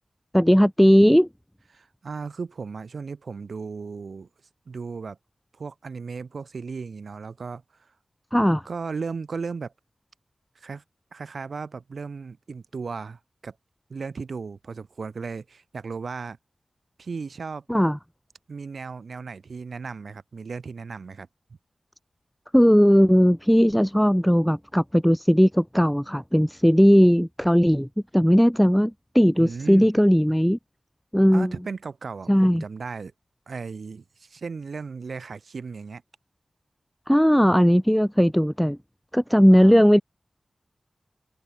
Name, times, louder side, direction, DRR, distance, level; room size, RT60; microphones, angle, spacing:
voice 1, 0.3-1.3 8.3-8.7 17.7-18.0 22.5-27.9 28.1-30.6 31.1-31.5 32.3-32.6 37.1-38.8 39.1-40.0, equal, 5° left, 0.9 m, -18 dB
voice 2, 1.7-4.3 4.7-5.2 5.5-7.9 8.6-9.7 10.5-10.8 11.1-13.6 13.9-16.4 17.0-17.6 18.5-21.3 29.4-29.9 31.3-33.1 33.5-36.0 39.5-39.8, right 5 dB, 80° right, 2.7 m, -36 dB
cardioid pair, 50°, 0 cm